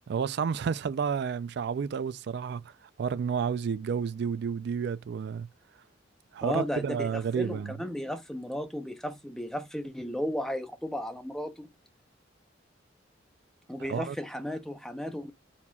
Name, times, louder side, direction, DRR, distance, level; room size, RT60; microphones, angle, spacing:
voice 1, 0.0-5.5 6.3-7.8 13.9-14.2, right 6 dB, 65° right, 0.3 m, -31 dB
voice 2, 6.4-11.7 13.7-15.3, equal, 5° left, 0.7 m, -34 dB
4.3 x 4.2 x 2.3 m
head